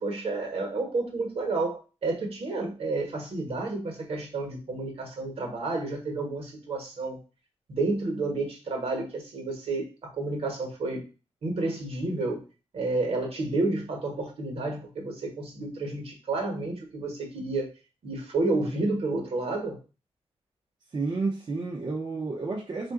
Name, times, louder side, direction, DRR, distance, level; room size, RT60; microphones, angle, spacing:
voice 1, 0.0-7.2 7.7-11.1 11.4-12.4 12.7-17.7 18.0-19.8, right 2 dB, 60° right, 1 dB, 1.2 m, -30 dB
voice 2, 20.9-22.9, right 3 dB, 40° right, -2 dB, 0.6 m, -31 dB
3.7 x 2.5 x 3.7 m, 0.33 s
wide cardioid pair, 150°, 11 cm